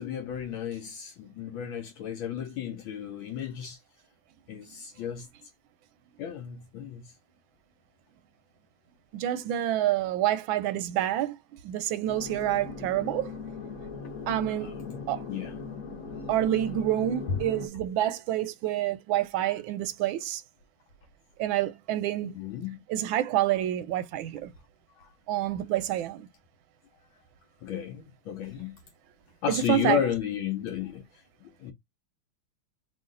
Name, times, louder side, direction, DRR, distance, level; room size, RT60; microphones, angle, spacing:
voice 1, 0.0-3.8 4.5-5.3 6.2-7.1 14.6-15.0 15.3-15.5 22.2-22.8 25.0-25.1 27.6-28.8 29.4-31.0 31.6-31.7, left 9 dB, 75° left, 1.3 m, -33 dB
voice 2, 9.1-11.4 11.6-13.3 14.3-14.8 15.1-15.2 16.3-20.4 21.4-22.4 22.9-24.5 25.3-26.3 29.5-30.0, right 12 dB, 75° right, 1.2 m, -28 dB
sound 1, 12.1-17.7, left 4 dB, 55° left, 1.1 m, -39 dB
3.1 x 2.8 x 3.7 m
omnidirectional pair, 2.4 m